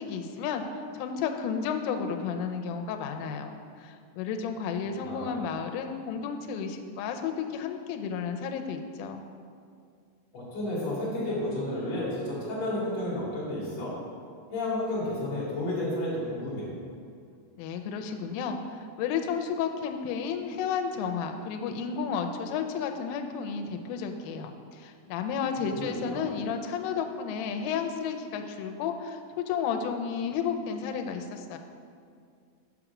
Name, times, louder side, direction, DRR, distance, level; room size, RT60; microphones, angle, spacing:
voice 1, 0.0-9.2 17.6-31.6, left 6 dB, 85° left, 5 dB, 3.2 m, -32 dB
voice 2, 5.0-5.4 10.3-13.9 14.5-16.7 25.6-26.2, left 1 dB, 40° left, -7 dB, 3.1 m, -32 dB
8.6 x 4.9 x 7.1 m, 2.2 s
omnidirectional pair, 5.6 m